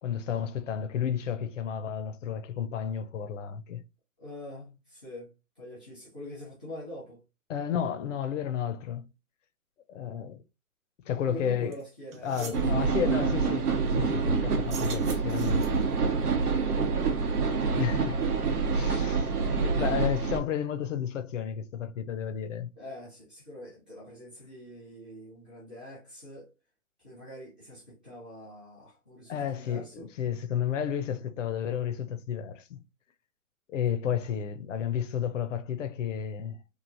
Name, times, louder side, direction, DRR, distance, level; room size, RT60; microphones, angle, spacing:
voice 1, 0.0-3.8 7.5-9.1 9.9-10.4 11.1-11.7 12.2-13.6 14.0-15.6 17.8-18.2 18.7-19.3 19.6-22.7 29.3-32.8 33.7-36.6, left 9 dB, 55° left, 0.5 m, -32 dB
voice 2, 4.2-5.3 5.6-7.2 11.1-13.5 16.6-17.0 19.1-19.5 22.7-26.5 27.0-30.1, left 1 dB, 5° right, 0.4 m, -44 dB
sound 1, 11.7-11.8 12.1-12.7 14.6-15.9, right 4 dB, 65° right, 1.0 m, -43 dB
sound 2, 12.5-20.4, right 5 dB, 85° right, 0.8 m, -27 dB
3.0 x 2.4 x 2.4 m
hypercardioid pair, 135°, 44 cm